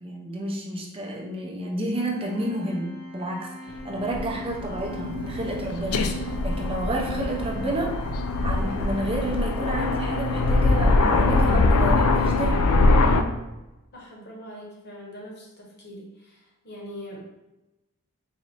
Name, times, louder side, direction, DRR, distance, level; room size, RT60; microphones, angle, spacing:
voice 1, 0.0-2.9 3.1-7.9 8.4-12.6, right 1 dB, 25° right, -1 dB, 0.5 m, -30 dB
Organ, 1.9-12.7, equal, 15° left, 0.8 m, -41 dB
Aircraft, 3.7-13.2, left 2 dB, 80° left, 0.4 m, -23 dB
voice 2, 13.9-17.2, equal, 50° left, -2 dB, 1.0 m, -42 dB
4.1 x 2.5 x 3.1 m, 0.99 s
head